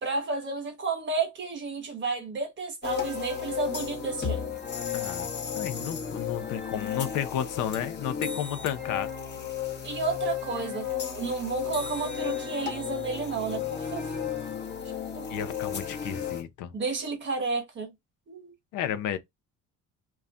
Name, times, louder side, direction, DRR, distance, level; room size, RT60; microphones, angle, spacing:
voice 1, 0.0-4.4 9.8-10.9 11.1-14.2 15.2-15.3 16.7-17.9 18.3-18.5, right 4 dB, 35° right, 1.2 m, -32 dB
sound 1, 2.8-16.4, left 8 dB, 35° left, 0.9 m, -33 dB
voice 2, 4.9-5.3 5.6-9.1 15.3-16.7 18.7-19.2, left 10 dB, 70° left, 0.6 m, -32 dB
2.3 x 2.1 x 3.7 m
cardioid pair, 125°, 32 cm